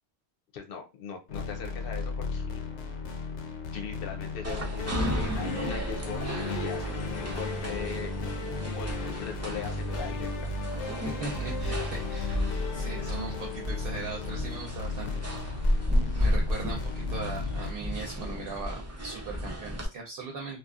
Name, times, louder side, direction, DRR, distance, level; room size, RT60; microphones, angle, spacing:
voice 1, 0.5-2.6 3.7-6.2 6.5-10.5 15.0-15.1, left 6 dB, 65° left, 4 dB, 0.8 m, -40 dB
sound 1, 1.3-17.7, left 3 dB, 90° left, 0.9 m, -34 dB
sound 2, 4.4-19.9, equal, 25° right, 0.4 m, -33 dB
voice 2, 11.0-15.2 16.2-20.6, right 4 dB, 65° right, 1 dB, 0.8 m, -39 dB
2.7 x 2.3 x 2.4 m, 0.27 s
omnidirectional pair, 1.1 m